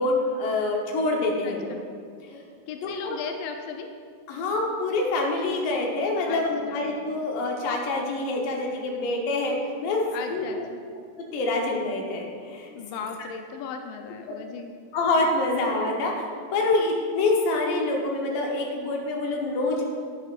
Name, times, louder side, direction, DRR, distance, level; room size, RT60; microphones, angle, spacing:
voice 1, 0.0-1.7 2.3-2.4 3.0-3.2 4.3-9.6 9.8-10.0 10.3-10.4 11.3-12.7 14.9-19.8, left 2 dB, 65° left, 0 dB, 2.4 m, -26 dB
voice 2, 1.4-1.8 2.7-3.9 6.3-6.9 10.1-10.8 12.8-14.7, left 6 dB, 85° left, 4 dB, 2.0 m, -36 dB
11.0 x 9.8 x 2.5 m, 2.1 s
omnidirectional pair, 4.7 m